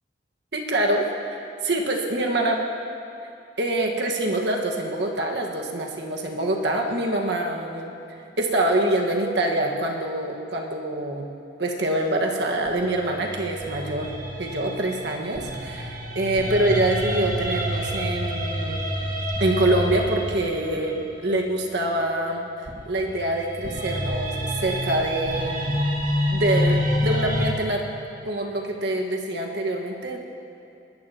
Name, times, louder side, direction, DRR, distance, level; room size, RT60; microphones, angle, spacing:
voice 1, 0.5-1.4 1.6-2.6 3.6-8.0 8.4-11.3 11.6-14.1 14.4-18.8 19.4-24.3 24.6-25.6 26.3-27.8 28.2-30.2, right 1 dB, 70° right, 1 dB, 1.5 m, -25 dB
sound 1, 12.7-21.8 22.7-27.5, equal, 50° right, 1.6 m, -28 dB
21.0 x 14.0 x 2.9 m, 2.8 s
head